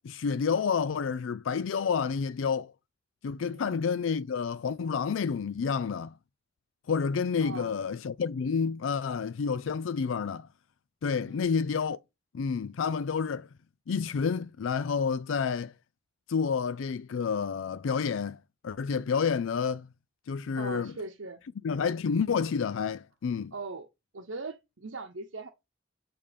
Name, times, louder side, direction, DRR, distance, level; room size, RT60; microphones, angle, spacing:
voice 1, 0.0-2.7 3.2-6.1 6.9-10.5 11.0-12.0 12.3-13.5 13.9-15.7 16.3-18.4 18.6-19.9 20.3-20.9 21.6-23.5, left 6 dB, 85° left, 0.4 m, -29 dB
voice 2, 3.4-3.9 7.4-7.8 11.3-11.6 20.6-21.4 23.5-23.9 24.1-25.5, right 3 dB, 85° right, 0.9 m, -40 dB
8.6 x 3.7 x 5.1 m
head